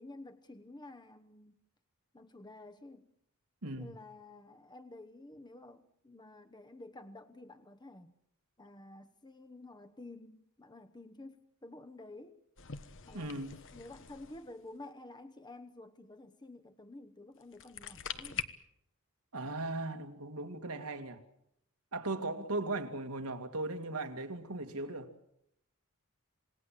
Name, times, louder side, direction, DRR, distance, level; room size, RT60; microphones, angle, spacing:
voice 1, 0.0-1.6 2.1-3.0 3.6-8.2 8.6-12.4 13.1-13.3 13.7-18.4, left 2 dB, 20° left, 1.1 m, -51 dB
sound 1, 12.6-14.7 17.4-18.4, left 8 dB, 60° left, 1.3 m, -43 dB
voice 2, 13.1-13.5 19.3-21.2 21.9-25.1, right 2 dB, 90° right, 2.5 m, -38 dB
27.5 x 19.0 x 7.7 m
head